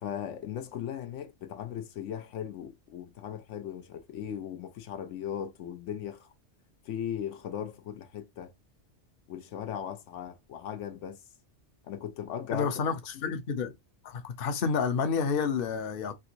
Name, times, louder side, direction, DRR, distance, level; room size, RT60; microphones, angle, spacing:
voice 1, 0.0-6.3 6.8-8.5 9.3-11.2 11.9-12.7 13.2-13.4, left 9 dB, 85° left, 1.0 m, -38 dB
voice 2, 12.5-13.7 14.0-16.1, left 5 dB, 55° left, 0.8 m, -29 dB
3.5 x 2.6 x 2.7 m
omnidirectional pair, 1.2 m